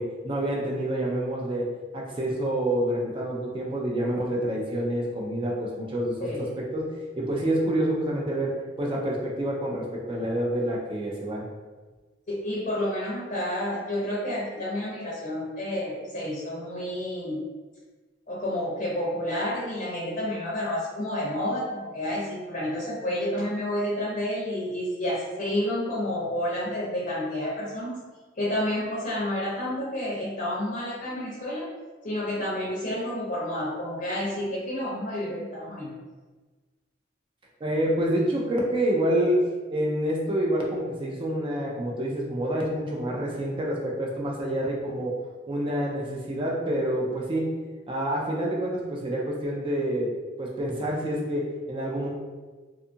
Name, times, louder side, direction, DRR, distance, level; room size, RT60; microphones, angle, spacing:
voice 1, 0.0-1.7 1.9-6.8 7.2-11.4 37.6-39.4 39.7-45.2 45.5-47.5 47.9-52.1, right 1 dB, 25° right, -2 dB, 0.4 m, -27 dB
voice 2, 6.2-6.5 12.3-17.4 18.3-27.9 28.4-31.7 32.0-35.9, left 1 dB, 40° left, -6 dB, 0.6 m, -30 dB
2.6 x 2.4 x 2.6 m, 1.3 s
head